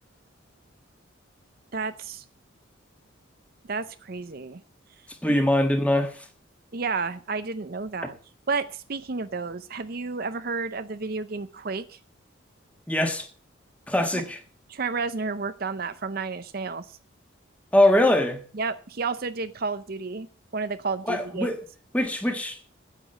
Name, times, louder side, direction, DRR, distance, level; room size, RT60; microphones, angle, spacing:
voice 1, 1.7-2.2 3.7-4.6 5.3-5.5 6.7-8.2 8.5-12.0 14.1-14.2 14.7-17.0 18.5-20.3 20.5-21.5, right 4 dB, 45° right, 0.6 m, -31 dB
voice 2, 5.2-6.3 12.9-13.3 13.9-14.4 17.7-18.4 21.1-21.6 21.9-22.6, left 1 dB, 5° left, 1.4 m, -22 dB
9.9 x 8.3 x 7.6 m
head